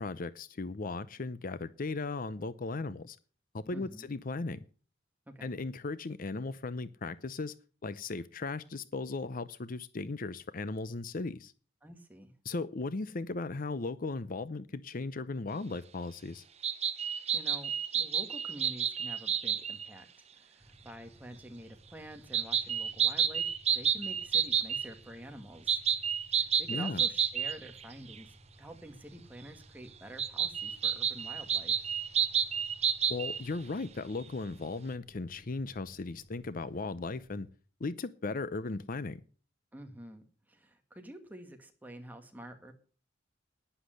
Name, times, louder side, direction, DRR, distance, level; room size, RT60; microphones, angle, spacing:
voice 1, 0.0-3.2 3.5-4.6 5.4-7.5 7.8-11.5 12.4-16.4 26.7-27.0 33.1-37.5 37.8-39.2, left 3 dB, 45° left, 16 dB, 0.7 m, -37 dB
voice 2, 3.7-4.1 5.4-5.5 11.8-12.3 17.3-25.8 26.3-31.8 39.7-42.7, right 1 dB, 10° right, 5 dB, 2.0 m, -48 dB
sound 1, 16.6-19.9 22.3-24.9 25.7-27.8 28.1-28.2 30.2-33.4, right 8 dB, 35° right, 0.9 m, -30 dB
sound 2, 20.6-37.4, equal, 30° left, 4.9 m, -59 dB
11.5 x 10.5 x 7.8 m, 0.41 s
head